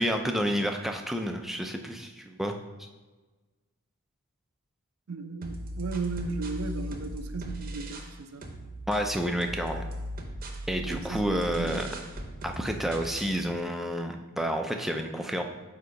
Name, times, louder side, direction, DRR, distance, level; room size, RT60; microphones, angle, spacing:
voice 1, 0.0-2.6 8.9-9.8 10.7-11.9 12.4-15.4, equal, ahead, 3 dB, 0.4 m, -29 dB
voice 2, 5.1-8.4 10.8-11.9, right 4 dB, 90° right, 8 dB, 0.5 m, -36 dB
sound 1, 5.4-8.2 8.4-13.4, equal, 40° right, 0.7 m, -38 dB
8.0 x 2.8 x 5.1 m, 1.3 s
head